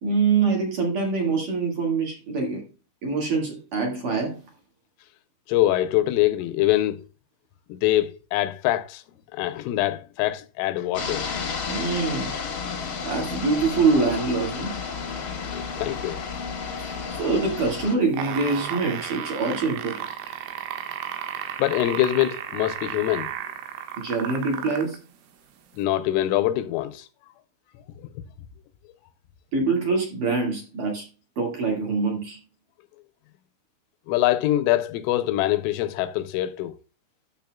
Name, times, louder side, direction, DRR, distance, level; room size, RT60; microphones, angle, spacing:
voice 1, 0.0-2.6 3.0-4.4 11.7-12.3 13.0-14.7 16.8-20.3 24.0-25.0 29.5-31.1 31.4-32.4, right 4 dB, 50° right, 2.7 m, -25 dB
voice 2, 5.5-7.0 7.7-9.0 9.3-11.3 15.5-16.2 21.6-23.3 25.8-27.1 34.1-36.8, left 14 dB, 85° left, 3.1 m, -24 dB
sound 1, 10.9-17.9, left 5 dB, 60° left, 1.3 m, -32 dB
sound 2, 18.0-25.0 25.8-25.9, right 9 dB, 85° right, 4.2 m, -33 dB
12.0 x 7.3 x 2.3 m
omnidirectional pair, 5.9 m